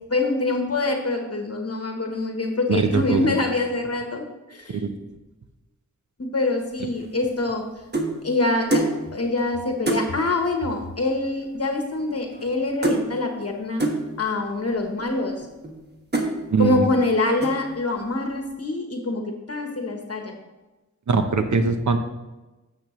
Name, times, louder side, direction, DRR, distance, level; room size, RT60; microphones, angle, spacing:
voice 1, 0.1-4.2 4.5-4.8 6.2-7.6 8.2-8.8 9.1-13.9 14.2-15.5 16.6-20.3, left 2 dB, 55° left, 3 dB, 1.1 m, -25 dB
voice 2, 2.7-3.4 4.7-4.9 16.5-16.9 21.1-22.0, right 4 dB, 70° right, 7 dB, 0.8 m, -21 dB
sound 1, 7.0-8.2 8.7-9.0 9.4-9.5 9.8-10.1 11.0-11.1 11.3-11.6 11.9-12.6 12.8-13.1 13.8-14.0 14.7-14.8 15.4-15.8 16.1-16.4 16.9-17.1 17.4-17.8, right 2 dB, 35° right, 1.3 m, -25 dB
12.0 x 7.4 x 3.1 m, 1.1 s
wide cardioid pair, 90°, 30 cm